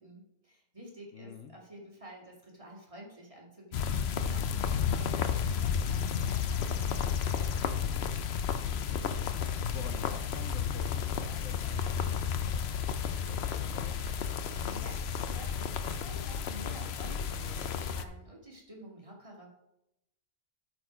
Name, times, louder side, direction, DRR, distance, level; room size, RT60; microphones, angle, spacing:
voice 1, 0.0-7.6 14.5-19.5, right 1 dB, 25° right, -2 dB, 2.0 m, -50 dB
voice 2, 1.1-1.5 8.6-9.2 9.6-12.6 13.0-14.1, left 5 dB, 75° left, 9 dB, 1.1 m, -49 dB
sound 1, 3.7-18.0, left 7 dB, 60° left, 0.8 m, -32 dB
13.0 x 4.4 x 5.0 m, 0.89 s
omnidirectional pair, 1.4 m